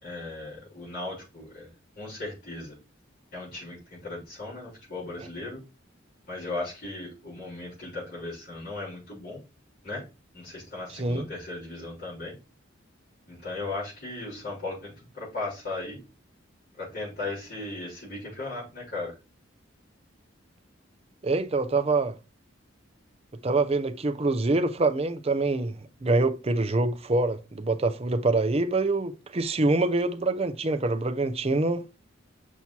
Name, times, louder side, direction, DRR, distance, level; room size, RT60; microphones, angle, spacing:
voice 1, 0.0-1.7 2.0-2.7 3.3-5.6 6.3-9.4 9.8-10.0 10.3-12.4 13.3-16.0 16.8-19.1, left 2 dB, 55° left, 3.9 m, -37 dB
voice 2, 10.9-11.3 21.2-22.1 23.4-31.9, right 2 dB, 30° right, 0.6 m, -25 dB
7.1 x 6.0 x 2.8 m
head